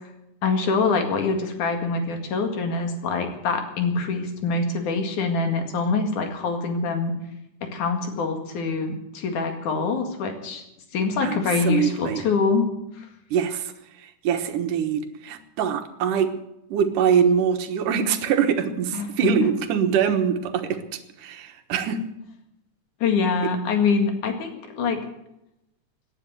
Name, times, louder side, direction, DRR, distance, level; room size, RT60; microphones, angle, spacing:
voice 1, 0.4-7.1 7.6-10.6 10.9-12.7 13.0-13.1 18.9-19.4 23.0-25.0, left 4 dB, 75° left, 5 dB, 3.5 m, -24 dB
voice 2, 11.6-12.2 13.3-13.7 14.2-16.3 16.7-20.8 21.2-22.0, right 7 dB, 85° right, 7 dB, 2.8 m, -23 dB
18.0 x 10.0 x 8.0 m, 0.85 s
omnidirectional pair, 3.6 m